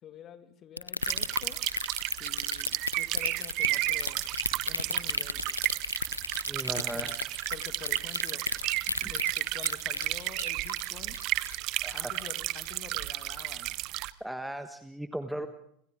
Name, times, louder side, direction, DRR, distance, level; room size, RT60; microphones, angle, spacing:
voice 1, 0.0-1.6 2.1-4.2 4.7-5.4 6.7-7.2 7.5-8.5 9.1-11.2 11.9-13.8, left 9 dB, 35° left, 9 dB, 2.1 m, -48 dB
sound 1, 0.8-12.4 12.7-13.0 13.4-13.5, left 3 dB, 85° left, 0.8 m, -32 dB
sound 2, 1.0-14.1, right 18 dB, 45° right, 0.9 m, -33 dB
voice 2, 6.5-7.3 8.9-9.1 11.8-12.1 14.2-15.5, right 1 dB, 5° right, 9 dB, 1.3 m, -37 dB
29.0 x 27.0 x 3.7 m, 0.72 s
figure-of-eight pair, 85°, 0 cm